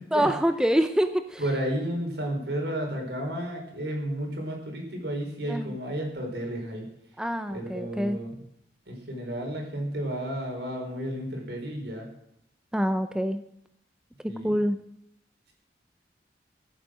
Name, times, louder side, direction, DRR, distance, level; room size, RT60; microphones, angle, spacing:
voice 1, 0.1-1.4 5.5-5.7 7.2-8.2 12.7-13.4 14.2-14.8, equal, 5° right, 9 dB, 0.5 m, -26 dB
voice 2, 1.4-6.9 7.5-8.4 8.9-12.1 14.3-14.5, right 1 dB, 75° right, 2 dB, 4.5 m, -32 dB
15.5 x 8.2 x 6.4 m, 0.76 s
head